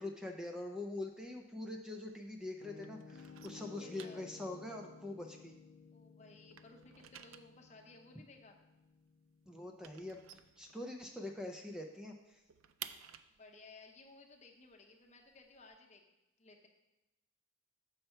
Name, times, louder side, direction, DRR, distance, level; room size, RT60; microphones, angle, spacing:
voice 1, 0.0-5.5 9.5-10.2 10.6-12.4, left 2 dB, 5° right, 2 dB, 0.4 m, -44 dB
sound 1, 1.1-2.5 2.8-6.0 6.3-11.3 11.6-11.7 12.0-15.8, right 10 dB, 85° right, 0.4 m, -54 dB
Piano, 2.6-10.5, left 5 dB, 75° left, 0.4 m, -56 dB
voice 2, 3.5-4.3 5.9-8.6 13.3-16.1 16.4-16.7, left 3 dB, 35° left, 2 dB, 0.8 m, -58 dB
6.7 x 5.7 x 4.4 m, 1.0 s
head